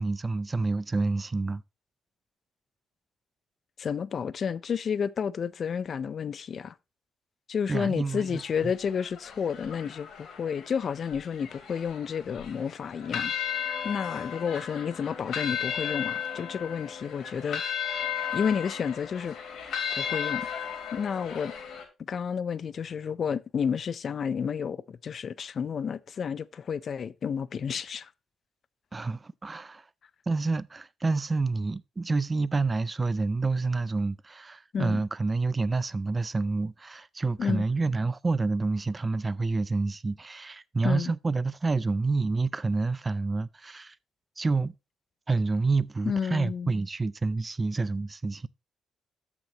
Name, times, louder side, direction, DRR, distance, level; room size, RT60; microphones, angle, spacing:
voice 1, 0.0-1.6 7.7-8.7 28.9-29.9 30.3-44.0 44.4-44.7 45.3-48.5, right 3 dB, 25° right, 0.4 m, -28 dB
voice 2, 3.8-6.7 7.5-17.6 18.3-19.4 20.0-20.5 20.9-21.5 22.1-28.1 34.7-35.0 37.4-37.6 40.8-41.1 46.0-46.7, left 7 dB, 50° left, 0.5 m, -31 dB
sound 1, 8.1-21.8, left 8 dB, 70° left, 2.6 m, -35 dB
13.0 x 6.0 x 2.9 m
cardioid pair, 90°, 0 cm